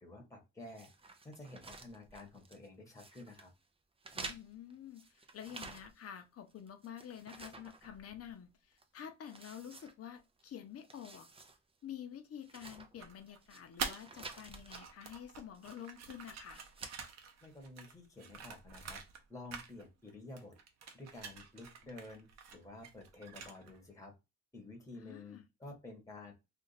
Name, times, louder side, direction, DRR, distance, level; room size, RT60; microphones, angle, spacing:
voice 1, 0.0-0.9 1.2-3.5 17.4-20.5 20.9-24.1 24.5-26.3, left 2 dB, 10° left, 1.1 m, -51 dB
sound 1, 0.7-2.7 3.0-3.5 4.0-6.2 6.5-8.4 8.8-8.9 9.3-10.4 10.8-11.6 11.9-12.0 12.4-13.6 14.0-14.8 15.5-16.0 16.4-17.0, right 3 dB, 20° right, 0.5 m, -51 dB
voice 2, 4.1-11.3 11.8-16.6 25.0-25.5, left 9 dB, 50° left, 0.7 m, -49 dB
sound 2, 13.0-14.3 14.6-19.2 19.5-20.1 20.4-23.8, right 6 dB, 60° right, 0.7 m, -47 dB
2.5 x 2.4 x 4.0 m
cardioid pair, 90°, 30 cm